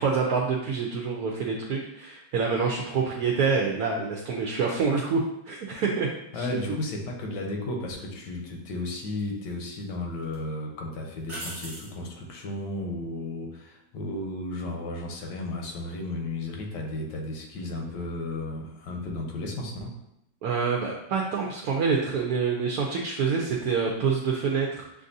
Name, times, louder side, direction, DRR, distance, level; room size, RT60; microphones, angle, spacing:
voice 1, 0.0-6.1 6.4-6.5 20.4-24.8, right 5 dB, 70° right, -1 dB, 1.0 m, -26 dB
voice 2, 6.3-19.9, left 2 dB, 80° left, 1 dB, 1.4 m, -34 dB
sound 1, 7.9-8.1 9.2-9.8 10.2-10.4 11.2-12.0 15.1-15.4, right 1 dB, 30° right, 1.2 m, -40 dB
6.7 x 2.5 x 2.6 m, 0.83 s
omnidirectional pair, 1.8 m